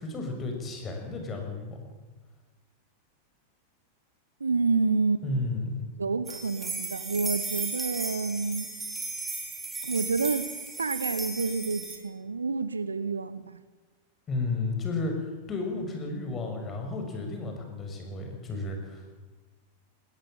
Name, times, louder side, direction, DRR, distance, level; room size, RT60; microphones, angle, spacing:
voice 1, 0.0-1.8 5.2-5.9 14.3-19.1, left 3 dB, 25° left, 3 dB, 6.5 m, -33 dB
voice 2, 4.4-5.2 6.0-8.7 9.8-10.5 10.8-13.6, right 4 dB, 75° right, 15 dB, 1.1 m, -28 dB
sound 1, 6.3-12.0, right 3 dB, 15° right, 4.2 m, -35 dB
21.0 x 18.0 x 9.0 m, 1.3 s
figure-of-eight pair, 90°, 0 cm